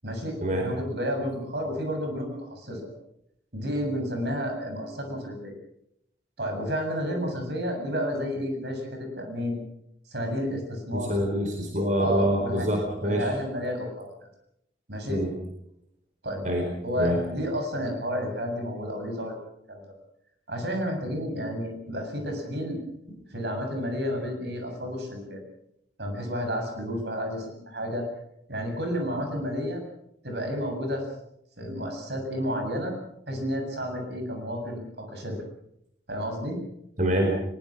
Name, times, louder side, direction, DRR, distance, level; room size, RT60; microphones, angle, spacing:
voice 1, 0.0-2.9 3.5-5.5 6.4-9.6 10.1-11.1 12.0-12.7 13.0-14.1 14.9-15.2 16.2-16.4 16.8-19.3 19.7-19.8 20.5-22.8 23.3-25.4 26.0-28.1 28.5-29.8 30.2-31.1 31.6-32.9 33.3-35.4 36.1-36.6, equal, 70° right, 4 dB, 7.4 m, -31 dB
voice 2, 10.9-13.3 15.1-15.3 16.4-16.7 17.0-17.2 37.0-37.3, equal, 45° right, 2 dB, 4.4 m, -25 dB
22.5 x 22.0 x 6.1 m, 0.78 s
head